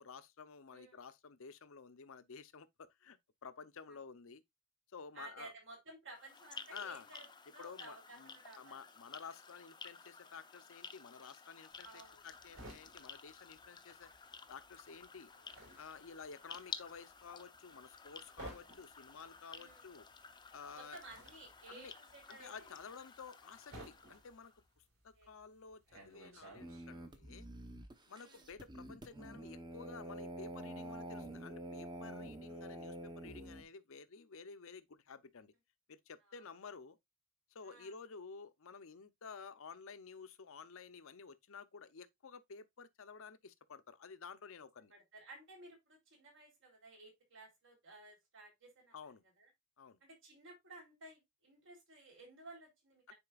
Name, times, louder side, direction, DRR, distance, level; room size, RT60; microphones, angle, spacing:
voice 1, 0.0-4.4 4.9-5.5 6.7-7.1 7.6-14.1 14.5-15.3 15.8-20.1 20.5-21.0 21.7-21.9 22.3-27.5 28.1-35.5 35.9-37.0 37.5-44.9 48.9-49.2 49.8-50.0 53.1-53.2, left 5 dB, 70° left, 0.7 m, -52 dB
voice 2, 0.7-1.0 3.9-4.0 5.1-8.8 11.8-12.3 15.3-15.5 19.5-19.9 20.7-22.8 25.2-25.3 28.1-28.5 32.5-32.7 36.3-36.4 37.6-37.9 44.9-49.1 49.4-49.5 50.0-53.1, right 2 dB, 65° right, 3.8 m, -56 dB
sound 1, 6.1-24.6, left 5 dB, 20° left, 0.6 m, -54 dB
sound 2, 11.7-14.3 14.5-27.2, right 1 dB, 80° right, 4.5 m, -56 dB
sound 3, 26.6-33.6, right 1 dB, 20° right, 1.0 m, -47 dB
9.8 x 4.4 x 2.4 m
head